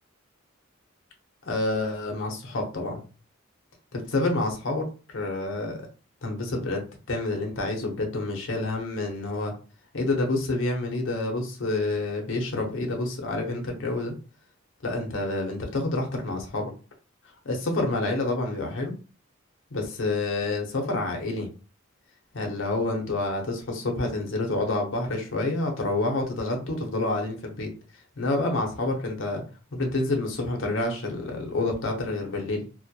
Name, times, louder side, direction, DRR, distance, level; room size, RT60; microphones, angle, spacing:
voice 1, 1.4-3.0 3.9-4.8 5.1-5.9 6.2-9.5 9.9-14.1 14.8-16.7 17.4-18.9 19.7-21.5 22.3-27.7 28.2-29.4 29.7-32.6, left 2 dB, 65° left, 2 dB, 0.6 m, -28 dB
2.2 x 2.0 x 2.7 m, 0.35 s
head